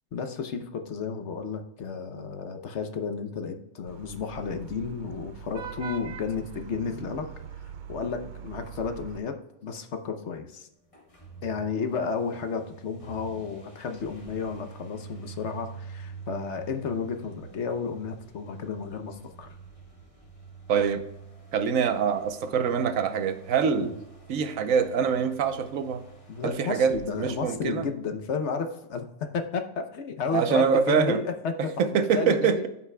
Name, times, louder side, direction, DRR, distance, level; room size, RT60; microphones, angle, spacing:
voice 1, 0.1-7.3 7.9-10.7 11.4-19.5 23.8-23.9 26.3-29.1 29.3-31.7 32.1-32.7, left 5 dB, 60° left, 7 dB, 1.1 m, -32 dB
Vehicle horn car horn honking / Traffic noise roadway noise, 3.9-9.2, right 8 dB, 65° right, 0.4 m, -42 dB
sound 1, 10.8-28.3, right 5 dB, 25° left, 1.4 m, -47 dB
voice 2, 20.7-21.0 21.5-23.9 24.3-26.0 26.4-27.8 30.3-31.2 31.8-32.7, right 7 dB, 85° right, 9 dB, 1.2 m, -24 dB
14.5 x 5.8 x 2.2 m, 0.88 s
omnidirectional pair, 1.4 m